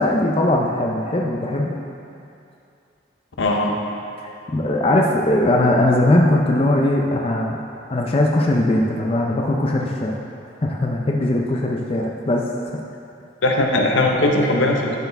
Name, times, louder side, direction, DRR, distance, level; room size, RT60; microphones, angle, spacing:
voice 1, 0.0-1.8 4.2-7.6 7.9-10.2 10.6-12.4, left 1 dB, 30° left, -1 dB, 0.4 m, -20 dB
voice 2, 3.4-3.7 13.4-15.0, left 1 dB, 75° left, 1 dB, 0.8 m, -19 dB
12.0 x 4.5 x 3.4 m, 2.6 s
head